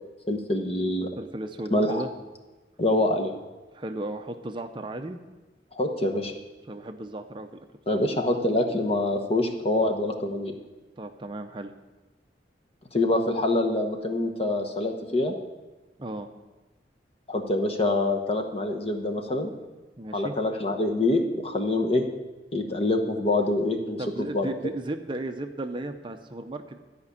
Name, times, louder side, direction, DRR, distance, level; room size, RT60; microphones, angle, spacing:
voice 1, 0.3-1.1 1.7-2.0 2.8-3.3 5.7-6.3 7.9-10.5 12.9-15.3 17.3-19.5 20.1-22.1 22.5-24.0 24.3-24.5, left 2 dB, 35° left, 3 dB, 1.0 m, -25 dB
voice 2, 1.2-2.1 3.7-5.2 6.7-7.5 7.9-8.0 11.0-11.7 16.0-16.3 20.0-20.3 24.0-26.8, right 2 dB, 30° right, 6 dB, 0.5 m, -35 dB
13.5 x 5.2 x 8.4 m, 1.2 s
head